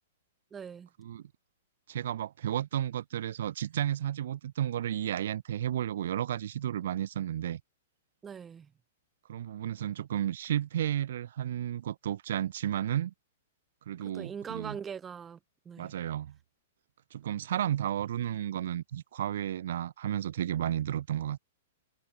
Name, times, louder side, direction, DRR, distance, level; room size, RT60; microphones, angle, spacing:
voice 1, 0.5-0.9 8.2-8.7 14.0-15.4 15.6-15.9, right 7 dB, 20° right, 1.1 m, -41 dB
voice 2, 1.9-7.6 9.3-13.1 13.9-14.8 15.8-16.3 17.1-21.4, right 11 dB, 65° right, 1.0 m, -32 dB
hypercardioid pair, 115°, 0 cm